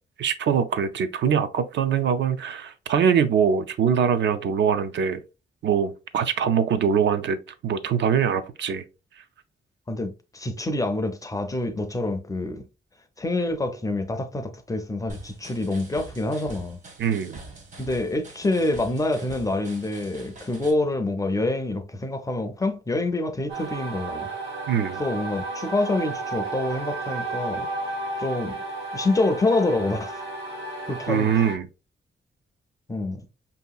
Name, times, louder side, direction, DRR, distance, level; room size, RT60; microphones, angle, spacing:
voice 1, 0.2-5.2 5.6-7.4 7.6-8.8 17.0-17.4 24.7-25.0 31.1-31.7, right 7 dB, 70° right, 0.5 m, -23 dB
voice 2, 9.9-12.6 13.2-16.8 17.8-24.3 25.0-27.7 28.2-28.6 28.9-30.2 30.9-31.3 32.9-33.2, left 2 dB, 20° left, 0.4 m, -26 dB
sound 1, 15.1-20.7, right 3 dB, 40° right, 0.9 m, -44 dB
sound 2, 23.5-31.6, right 2 dB, 85° right, 1.5 m, -33 dB
5.3 x 2.8 x 2.3 m
wide cardioid pair, 170°, 19 cm